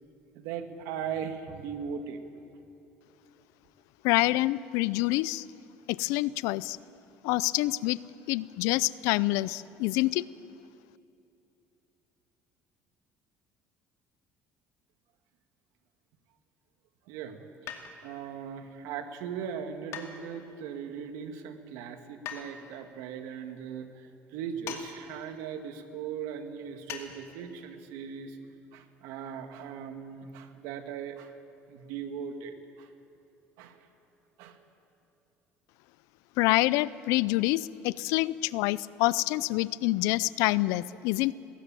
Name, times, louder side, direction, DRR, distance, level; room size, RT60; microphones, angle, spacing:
voice 1, 0.3-2.2 17.1-28.4 28.7-31.3 31.7-32.9 33.6-33.8 34.4-34.6, right 7 dB, 80° right, 7 dB, 1.8 m, -39 dB
voice 2, 4.0-5.4 5.9-6.8 7.2-8.0 8.3-10.2 36.4-41.3, left 19 dB, 80° left, 20 dB, 0.5 m, -27 dB
sound 1, 17.7-18.2 19.9-20.6 22.2-22.5 24.6-24.9 25.1-25.2 26.9-27.1 27.4-27.5, left 8 dB, 65° left, 2.4 m, -40 dB
20.5 x 16.0 x 9.0 m, 2.7 s
supercardioid pair, 105°, 5 cm